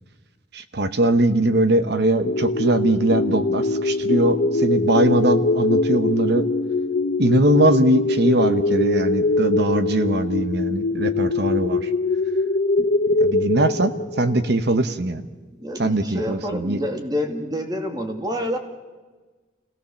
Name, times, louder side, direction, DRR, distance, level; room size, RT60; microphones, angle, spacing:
voice 1, 0.5-6.4 7.2-11.9 12.8-12.9 13.2-15.2 15.8-16.8, right 1 dB, 60° right, 10 dB, 1.0 m, -21 dB
sound 1, 2.2-14.7, left 2 dB, 55° left, 0.9 m, -22 dB
voice 2, 15.5-18.6, equal, 20° right, 4 dB, 2.5 m, -27 dB
28.5 x 17.5 x 7.2 m, 1.3 s
head